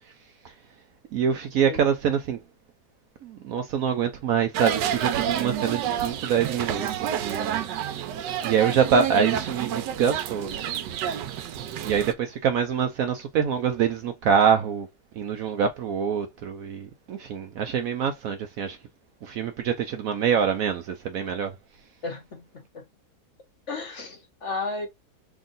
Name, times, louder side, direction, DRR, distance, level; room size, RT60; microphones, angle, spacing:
voice 1, 1.1-2.4 3.2-7.7 8.4-10.5 11.8-14.9 15.1-18.8 19.2-21.5, right 7 dB, 65° right, 0.9 m, -25 dB
sound 1, 4.5-12.1, right 9 dB, 85° right, 1.3 m, -29 dB
voice 2, 22.0-22.8 23.7-24.9, left 3 dB, 50° left, 1.2 m, -34 dB
3.6 x 2.5 x 3.9 m
omnidirectional pair, 1.9 m